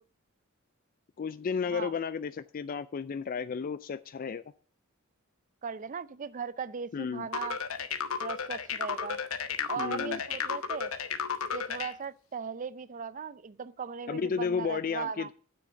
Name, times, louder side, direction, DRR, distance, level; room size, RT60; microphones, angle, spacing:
voice 1, 1.2-4.4 6.9-7.3 9.8-10.2 14.1-15.3, left 6 dB, 40° left, 0.3 m, -33 dB
voice 2, 5.6-7.6 8.2-9.2 9.7-10.9 11.5-15.3, right 6 dB, 40° right, 0.5 m, -38 dB
sound 1, 7.3-11.9, left 6 dB, 80° left, 1.0 m, -33 dB
9.0 x 6.3 x 7.0 m
head